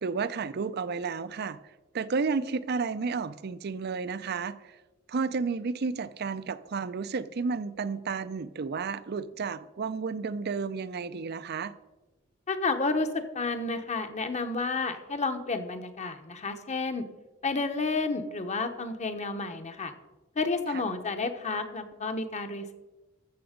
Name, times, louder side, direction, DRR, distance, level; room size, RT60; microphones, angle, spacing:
voice 1, 0.0-1.6 1.9-4.8 5.1-11.7 20.7-20.8, right 5 dB, 50° right, 16 dB, 0.5 m, -32 dB
voice 2, 12.5-17.0 17.4-19.9 20.4-22.7, left 3 dB, 35° left, 8 dB, 0.9 m, -31 dB
14.0 x 7.0 x 5.1 m, 1.1 s
head